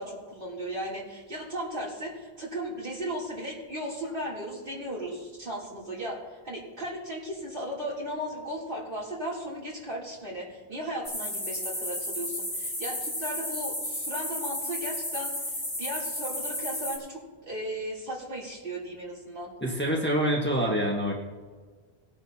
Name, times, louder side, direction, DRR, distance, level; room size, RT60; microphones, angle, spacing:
voice 1, 0.0-19.5, equal, 55° right, -5 dB, 3.6 m, -36 dB
sound 1, 11.0-17.0, left 1 dB, 45° left, 4.0 m, -33 dB
voice 2, 19.6-21.1, equal, 10° left, -3 dB, 1.7 m, -26 dB
20.0 x 10.0 x 3.0 m, 1.5 s
omnidirectional pair, 1.1 m